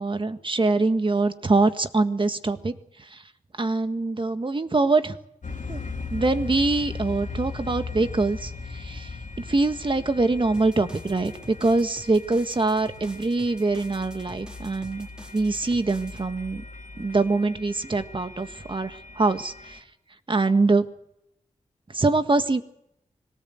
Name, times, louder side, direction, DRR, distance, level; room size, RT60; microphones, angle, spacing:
voice 1, 0.0-2.7 3.1-3.2 3.6-5.1 5.7-5.8 6.1-9.1 9.5-15.1 15.3-16.6 17.0-19.8 20.3-20.8 21.9-22.6, right 3 dB, 40° right, 9 dB, 1.6 m, -24 dB
sound 1, 5.4-19.8, left 4 dB, 75° left, 2.6 m, -38 dB
sound 2, 10.5-16.2, equal, 5° right, 4.1 m, -47 dB
22.5 x 18.5 x 8.0 m, 0.77 s
cardioid pair, 55°, 13 cm